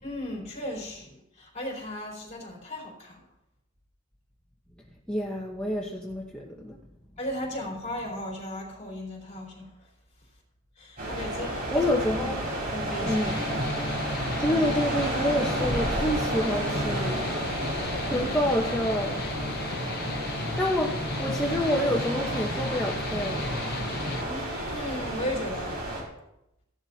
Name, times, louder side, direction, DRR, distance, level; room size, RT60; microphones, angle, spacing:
voice 1, 0.0-3.2 7.2-9.7 10.8-11.9 12.7-13.5 13.7-13.8 17.6-18.1 19.8-20.0 24.2-25.8, left 1 dB, 35° left, -2 dB, 4.3 m, -36 dB
voice 2, 5.1-6.8 11.7-12.5 13.0-13.4 14.4-17.2 18.1-19.1 20.6-20.9 21.2-23.5, left 1 dB, 5° left, -3 dB, 1.1 m, -28 dB
sound 1, 11.0-26.0, right 1 dB, 45° right, 4.4 m, -31 dB
sound 2, 13.1-24.2, left 2 dB, 50° left, 0.8 m, -35 dB
16.0 x 11.5 x 2.9 m, 0.85 s
head